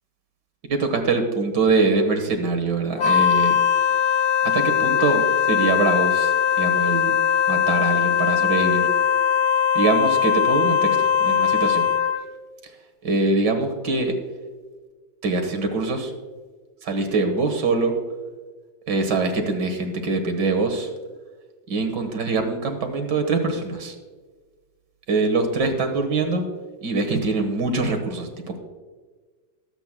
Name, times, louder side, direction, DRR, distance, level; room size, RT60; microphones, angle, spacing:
voice 1, 0.7-3.6 4.5-7.2 7.5-8.9 9.8-11.9 13.0-14.2 15.2-16.1 16.8-18.0 18.9-20.9 21.7-24.0 25.1-26.4 26.8-28.6, right 3 dB, 85° right, 5 dB, 2.1 m, -23 dB
Wind instrument woodwind instrument, 3.0-12.3, left 8 dB, 80° left, 1.3 m, -20 dB
21.0 x 8.1 x 2.2 m, 1.4 s
omnidirectional pair, 1.8 m